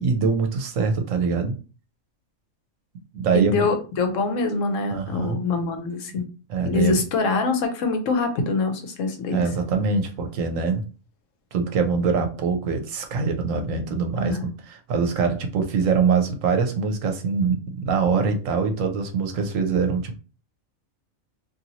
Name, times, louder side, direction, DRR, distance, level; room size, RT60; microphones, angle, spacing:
voice 1, 0.0-1.6 3.1-3.7 4.9-5.5 6.5-7.0 9.3-10.8 11.5-20.2, right 5 dB, 75° right, 5 dB, 1.1 m, -24 dB
voice 2, 3.3-6.2 6.7-9.4 14.2-14.4, left 3 dB, 70° left, 6 dB, 1.0 m, -24 dB
2.8 x 2.6 x 2.7 m, 0.34 s
omnidirectional pair, 1.4 m